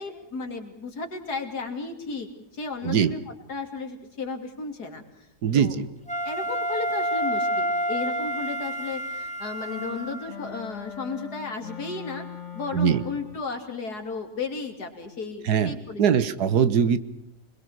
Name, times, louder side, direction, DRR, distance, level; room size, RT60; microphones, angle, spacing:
voice 1, 0.0-2.3 2.5-5.0 5.5-5.7 6.2-12.2 12.5-16.3, left 4 dB, 80° left, 5 dB, 3.4 m, -34 dB
voice 2, 2.8-3.1 5.4-5.9 12.7-13.0 15.4-17.0, right 7 dB, 85° right, 14 dB, 1.7 m, -22 dB
Wind instrument woodwind instrument, 6.1-10.4, right 1 dB, 5° left, 2.4 m, -29 dB
sound 1, 9.7-13.5, left 7 dB, 50° left, 1.8 m, -40 dB
26.0 x 21.5 x 6.5 m, 0.81 s
omnidirectional pair, 1.7 m